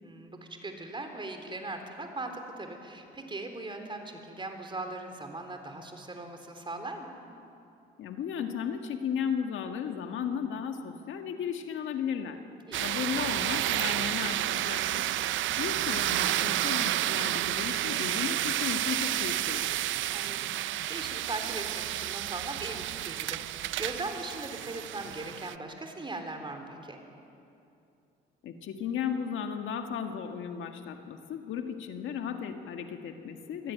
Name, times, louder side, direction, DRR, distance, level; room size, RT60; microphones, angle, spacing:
voice 1, 0.0-7.1 12.7-13.0 20.1-27.0, right 2 dB, 25° right, 5 dB, 3.5 m, -39 dB
voice 2, 8.0-12.4 12.8-15.0 15.6-19.7 28.4-33.7, left 7 dB, 80° left, 5 dB, 1.8 m, -35 dB
sound 1, 12.7-25.5, right 13 dB, 75° right, 0.6 m, -30 dB
23.5 x 16.0 x 9.3 m, 2.7 s
cardioid pair, 90°, 20 cm